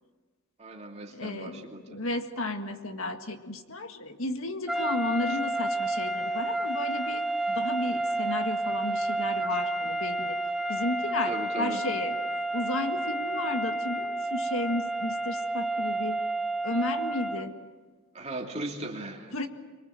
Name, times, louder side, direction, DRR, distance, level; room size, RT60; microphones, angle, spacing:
voice 1, 0.6-2.0 5.3-5.4 6.2-6.4 9.5-9.6 11.3-11.8 18.1-19.3, right 1 dB, 30° right, 1 dB, 2.8 m, -38 dB
voice 2, 1.1-7.2 7.6-10.4 10.7-12.2 12.5-16.2 16.6-17.5 19.3-19.5, left 2 dB, 65° left, 6 dB, 1.9 m, -33 dB
sound 1, 4.7-17.5, right 2 dB, ahead, 0.7 m, -30 dB
25.0 x 24.0 x 7.7 m, 1.4 s
head